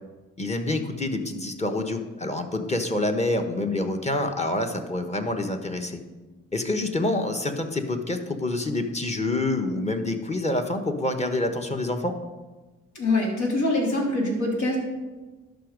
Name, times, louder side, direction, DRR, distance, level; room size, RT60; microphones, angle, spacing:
voice 1, 0.4-6.0 6.5-12.2, left 2 dB, 20° left, 5 dB, 1.2 m, -27 dB
voice 2, 12.9-14.8, left 2 dB, 70° left, -2 dB, 3.2 m, -24 dB
11.5 x 6.2 x 5.2 m, 1.2 s
cardioid pair, 90°, 30 cm